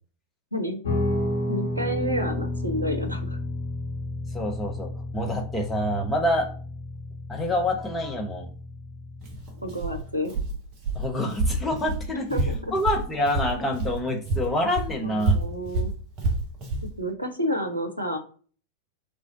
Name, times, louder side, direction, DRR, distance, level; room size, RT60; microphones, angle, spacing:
Guitar, 0.8-10.1, left 1 dB, 60° left, 1.0 m, -32 dB
voice 1, 1.5-3.4 9.6-10.3 12.3-12.7 15.0-15.9 17.0-18.2, equal, 90° left, 7 dB, 0.5 m, -29 dB
voice 2, 4.3-6.5 7.3-8.5 10.9-12.3 12.7-15.4, left 1 dB, 15° left, 2 dB, 0.8 m, -27 dB
Walk footsteps, 9.2-14.0 14.3-16.9, right 2 dB, 35° right, 1.1 m, -28 dB
3.3 x 2.5 x 3.7 m, 0.41 s
figure-of-eight pair, 90°, 0 cm